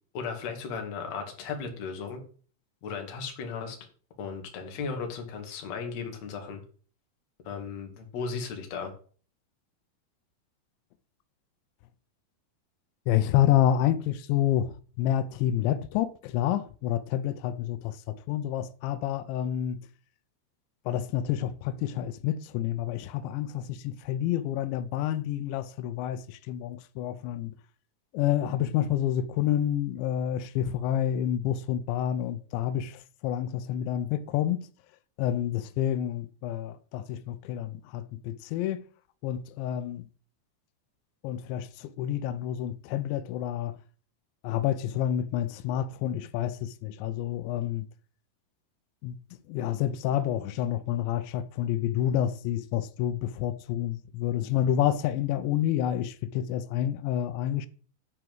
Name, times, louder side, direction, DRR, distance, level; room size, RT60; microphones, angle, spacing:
voice 1, 0.1-2.2 2.8-3.8 4.2-6.6 7.4-8.9, left 5 dB, 45° left, 2.7 m, -36 dB
voice 2, 13.1-19.9 20.9-27.5 28.1-34.7 35.2-38.8 39.2-40.1 41.2-43.8 44.4-47.9 49.0-49.2 49.5-57.7, left 11 dB, 85° left, 2.9 m, -29 dB
10.5 x 4.9 x 7.6 m
omnidirectional pair, 5.1 m